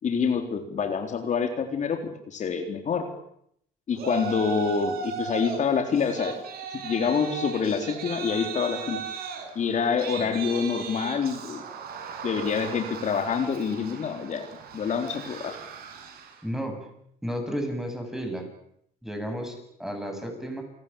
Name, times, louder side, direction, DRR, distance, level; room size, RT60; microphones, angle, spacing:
voice 1, 0.0-2.0 2.3-3.1 3.9-6.4 6.7-9.0 9.6-11.6 12.2-14.5 14.7-15.6, left 6 dB, 45° left, 5 dB, 4.0 m, -26 dB
Yell, 3.9-5.6 5.9-16.4, right 6 dB, 65° right, 6.8 m, -37 dB
voice 2, 16.4-16.8 17.2-18.5 19.0-20.6, equal, ahead, 5 dB, 8.0 m, -32 dB
29.5 x 19.0 x 9.0 m, 0.71 s
cardioid pair, 110°, 17 cm